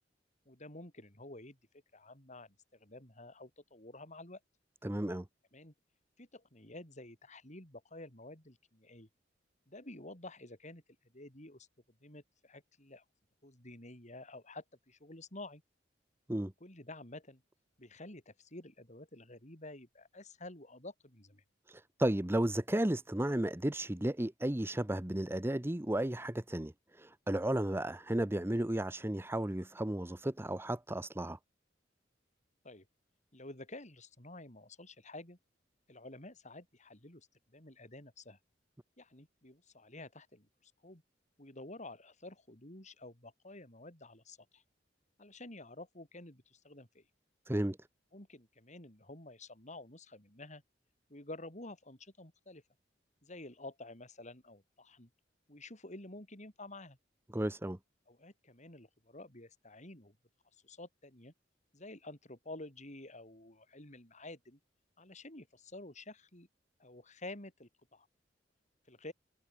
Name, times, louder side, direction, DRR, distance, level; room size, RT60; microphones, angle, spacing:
voice 1, 0.5-4.4 5.5-5.7 6.2-9.1 9.7-11.7 12.0-13.0 13.4-15.6 16.6-17.4 17.8-21.4 32.6-32.8 33.3-35.4 35.9-37.3 37.5-38.4 39.0-41.0 41.4-44.6 45.2-47.1 48.1-50.6 51.1-52.6 53.2-55.1 55.5-57.0 58.1-60.2 60.6-61.3 61.7-64.6 65.0-66.5 66.8-68.1 68.9-69.1, left 2 dB, 40° left, 6.4 m, -50 dB
voice 2, 4.8-5.3 16.3-16.5 21.7-31.4 47.5-47.8 57.3-57.8, right 1 dB, 15° right, 0.8 m, -33 dB
head